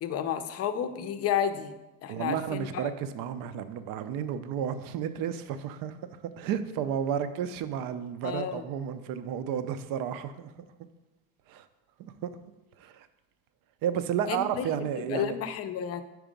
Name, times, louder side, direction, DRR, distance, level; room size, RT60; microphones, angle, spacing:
voice 1, 0.0-1.8 2.0-2.8 8.2-8.7 14.3-14.7 15.0-16.0, left 8 dB, 40° left, 10 dB, 0.5 m, -31 dB
voice 2, 2.1-10.5 11.5-11.7 12.0-12.3 12.8-13.1 13.8-15.3, right 8 dB, 65° right, 11 dB, 0.6 m, -32 dB
5.0 x 4.7 x 5.1 m, 1.0 s
cardioid pair, 125°, 37 cm